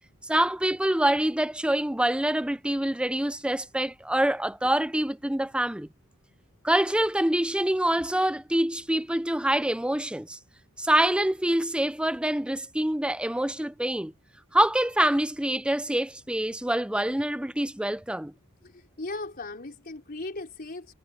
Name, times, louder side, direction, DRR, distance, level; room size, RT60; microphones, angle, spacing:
voice 1, 0.3-5.9 6.6-10.4 10.8-14.1 14.5-18.3, right 1 dB, 5° right, 0.6 m, -25 dB
voice 2, 18.6-20.9, left 2 dB, 45° left, 3.9 m, -37 dB
head